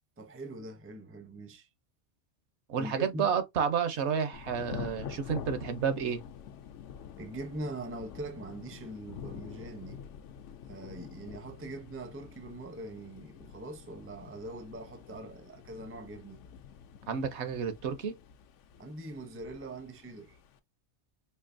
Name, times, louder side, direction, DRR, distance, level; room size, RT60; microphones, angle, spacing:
voice 1, 0.2-1.7 2.8-3.4 7.2-10.0 10.7-16.4 18.8-20.4, right 2 dB, 15° right, 0.4 m, -42 dB
voice 2, 2.7-6.2 17.1-18.2, right 7 dB, 65° right, 0.9 m, -30 dB
Thunder / Rain, 4.3-20.6, left 8 dB, 75° left, 0.9 m, -47 dB
4.5 x 2.8 x 2.5 m
omnidirectional pair, 1.3 m